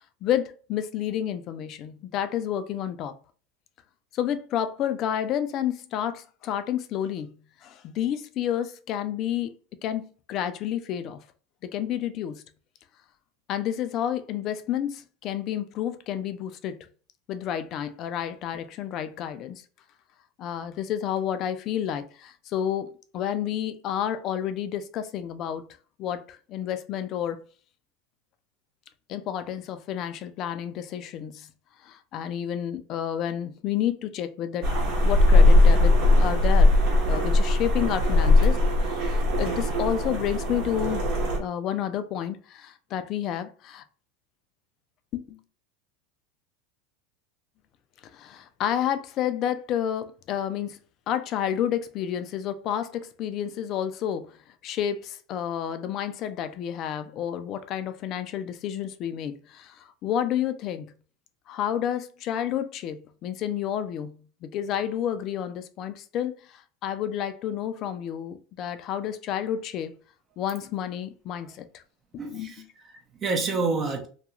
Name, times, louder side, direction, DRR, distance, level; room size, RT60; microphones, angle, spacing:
voice 1, 0.2-3.1 4.1-7.3 7.6-9.5 9.8-11.2 11.6-12.4 13.5-16.8 17.3-19.6 20.4-25.7 26.0-27.4 29.1-31.5 31.8-36.8 37.1-38.6 39.0-41.1 41.4-43.8 45.1-45.4 48.1-50.8 51.1-54.3 54.6-60.9 61.5-64.1 64.4-70.0 70.4-71.8 72.1-72.5, left 10 dB, 45° left, 0.4 m, -30 dB
sound 1, 34.6-41.4, left 2 dB, 60° right, 0.9 m, -20 dB
voice 2, 72.2-74.1, right 3 dB, 30° right, 0.6 m, -29 dB
2.4 x 2.2 x 2.9 m
supercardioid pair, 115°, 0 cm